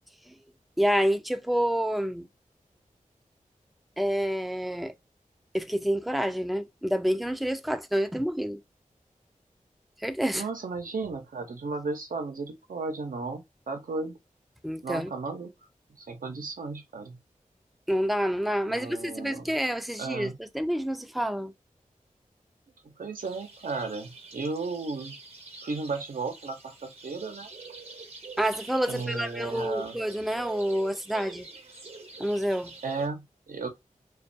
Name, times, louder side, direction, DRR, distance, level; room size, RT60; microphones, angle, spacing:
voice 1, 0.8-2.3 4.0-4.9 5.5-8.6 10.0-10.5 14.6-15.1 17.9-21.5 28.4-31.5 32.2-32.7, equal, ahead, 0.3 m, -28 dB
voice 2, 10.4-14.2 14.8-15.5 16.0-17.2 18.7-19.5 20.0-20.4 23.0-25.1 25.6-27.5 28.9-30.0 32.8-33.7, right 3 dB, 80° right, 0.6 m, -34 dB
sound 1, 23.2-33.1, right 3 dB, 45° right, 0.7 m, -46 dB
2.3 x 2.2 x 2.5 m
cardioid pair, 45°, 14 cm